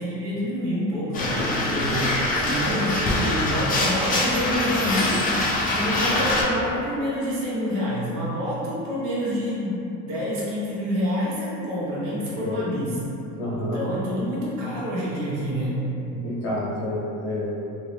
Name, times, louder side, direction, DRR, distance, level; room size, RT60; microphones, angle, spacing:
voice 1, 0.0-13.0 13.6-15.9, equal, 75° right, -7 dB, 1.1 m, -27 dB
sound 1, 1.1-6.4, left 2 dB, 25° left, 0.5 m, -24 dB
voice 2, 12.3-12.6 13.3-13.8 16.1-17.6, left 1 dB, 55° left, -6 dB, 1.0 m, -29 dB
3.0 x 2.7 x 3.2 m, 2.8 s
cardioid pair, 145°, 33 cm